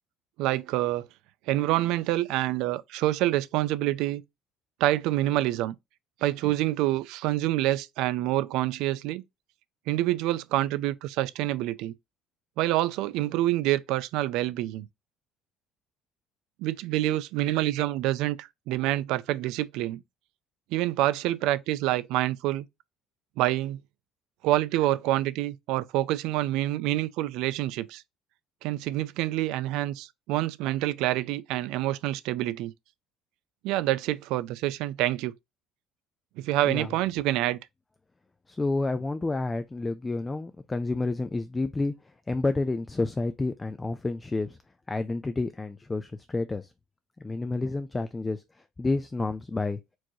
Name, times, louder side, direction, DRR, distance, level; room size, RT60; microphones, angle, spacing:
voice 1, 0.4-1.1 1.5-4.2 4.8-5.7 6.2-9.2 9.9-11.9 12.6-14.9 16.6-20.0 20.7-22.7 23.4-23.8 24.4-28.0 28.6-32.7 33.6-35.3 36.4-37.6, right 15 dB, 75° right, 0.4 m, -27 dB
voice 2, 38.5-41.9 42.3-44.6 44.9-46.7 47.2-48.4 48.8-49.8, left 3 dB, 15° left, 0.3 m, -29 dB
4.4 x 3.0 x 2.7 m
cardioid pair, 140°, 0 cm